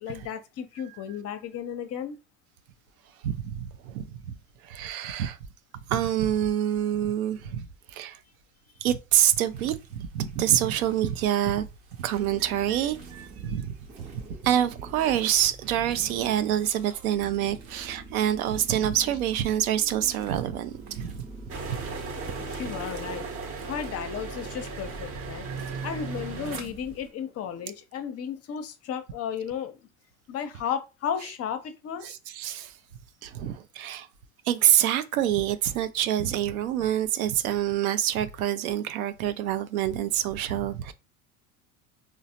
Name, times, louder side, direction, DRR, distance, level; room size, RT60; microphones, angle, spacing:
voice 1, 0.0-2.2 22.5-23.3 23.7-25.5 25.8-29.8 30.3-32.2, left 8 dB, 35° left, 0.6 m, -34 dB
voice 2, 3.2-4.2 4.6-5.4 5.9-8.2 8.8-11.7 12.0-13.7 14.0-14.1 14.4-21.2 25.5-25.9 32.0-32.7 33.2-34.1 34.5-40.9, right 11 dB, 80° right, 0.5 m, -26 dB
sound 1, 9.1-27.1, right 2 dB, 60° right, 1.0 m, -52 dB
sound 2, 12.1-27.7, right 4 dB, 15° right, 0.3 m, -43 dB
sound 3, 21.5-26.6, right 4 dB, 30° right, 0.8 m, -37 dB
3.9 x 2.0 x 2.7 m
hypercardioid pair, 85°, 43 cm